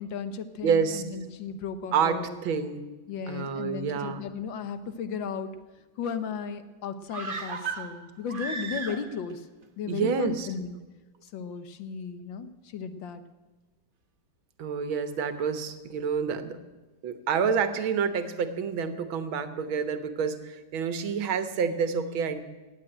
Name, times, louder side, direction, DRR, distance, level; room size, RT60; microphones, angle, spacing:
voice 1, 0.0-2.4 3.1-5.5 6.0-9.5 9.8-10.8 11.2-13.2, left 6 dB, 70° left, 11 dB, 1.6 m, -35 dB
voice 2, 0.6-1.0 1.9-2.8 3.3-4.2 9.9-10.5 14.6-16.6 17.0-22.4, right 6 dB, 85° right, 10 dB, 1.9 m, -28 dB
sound 1, 7.1-9.3 9.6-9.7, right 5 dB, 35° right, 1.0 m, -35 dB
18.0 x 7.6 x 8.8 m, 1.2 s
omnidirectional pair, 2.2 m